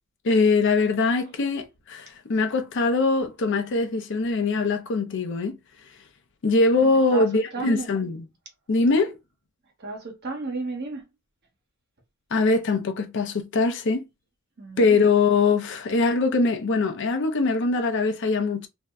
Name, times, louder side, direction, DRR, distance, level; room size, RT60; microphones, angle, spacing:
voice 1, 0.2-5.6 6.4-8.2 8.7-9.2 12.3-14.0 14.8-18.7, left 3 dB, 60° left, 0.6 m, -22 dB
voice 2, 6.8-7.9 9.8-11.1 14.6-15.0, right 3 dB, 50° right, 1.1 m, -33 dB
2.6 x 2.1 x 3.4 m
head